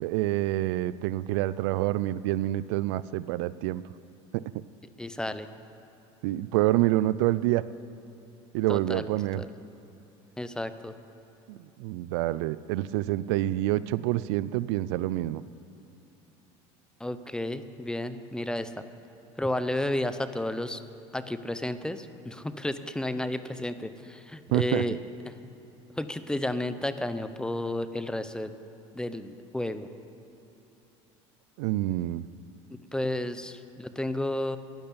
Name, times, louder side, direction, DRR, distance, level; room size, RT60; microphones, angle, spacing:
voice 1, 0.0-3.8 4.3-4.4 6.2-7.6 8.5-9.4 11.5-15.4 24.5-24.8 31.6-32.3, right 16 dB, 80° right, 18 dB, 0.4 m, -27 dB
voice 2, 5.0-5.5 8.7-9.1 9.4-9.5 10.4-10.9 17.0-18.8 19.4-20.8 21.1-25.0 25.2-25.3 26.0-28.5 28.9-29.9 32.7-34.6, left 1 dB, 5° left, 11 dB, 0.8 m, -32 dB
12.5 x 10.5 x 8.7 m, 3.0 s
supercardioid pair, 105°, 14 cm